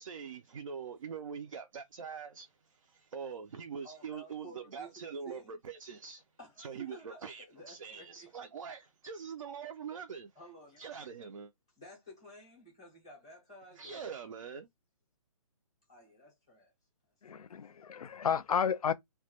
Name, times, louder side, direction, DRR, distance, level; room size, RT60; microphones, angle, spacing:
voice 1, 0.0-6.2 6.6-10.3 10.8-11.5 13.8-14.7, right 6 dB, 65° right, 0.4 m, -43 dB
voice 2, 3.8-5.6 6.4-8.3 10.3-10.8 11.8-14.3 15.9-16.7 17.3-17.4, right 1 dB, 10° left, 0.4 m, -53 dB
voice 3, 17.2-18.9, left 7 dB, 80° left, 0.4 m, -32 dB
2.1 x 2.0 x 2.8 m
hypercardioid pair, 180°, 19 cm